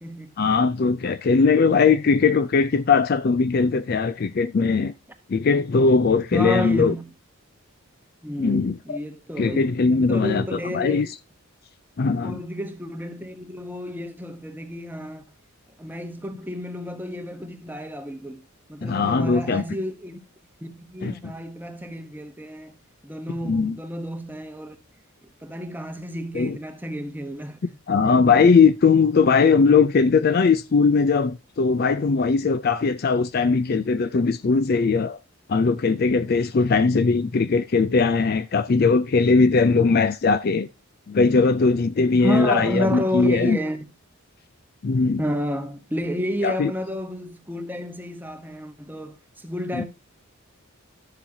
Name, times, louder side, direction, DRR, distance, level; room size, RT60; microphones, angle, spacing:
voice 1, 0.4-4.9 5.3-6.9 8.4-9.0 9.4-11.1 12.0-12.4 18.8-19.6 21.0-21.3 23.4-23.8 26.3-26.6 27.6-35.2 35.5-40.7 41.1-43.6 44.8-45.2 46.4-46.7 49.7-49.8, left 4 dB, 45° left, 0.4 m, -20 dB
voice 2, 6.3-7.1 8.2-9.7 10.0-11.1 12.0-15.2 15.8-18.4 18.7-20.2 20.6-22.7 23.0-24.8 25.4-27.6 42.2-43.9 45.2-49.8, equal, 10° right, 0.9 m, -31 dB
11.5 x 7.3 x 2.7 m
head